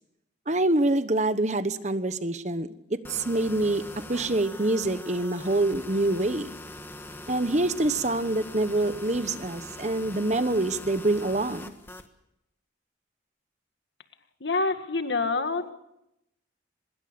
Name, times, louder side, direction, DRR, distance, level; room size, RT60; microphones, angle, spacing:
voice 1, 0.5-3.8 4.1-6.5 7.3-11.7, right 2 dB, 40° right, 12 dB, 1.1 m, -26 dB
sound 1, 3.0-12.1, left 1 dB, 10° left, 1.4 m, -42 dB
voice 2, 14.4-15.7, left 3 dB, 70° left, 8 dB, 1.9 m, -27 dB
24.5 x 21.5 x 6.9 m, 0.83 s
head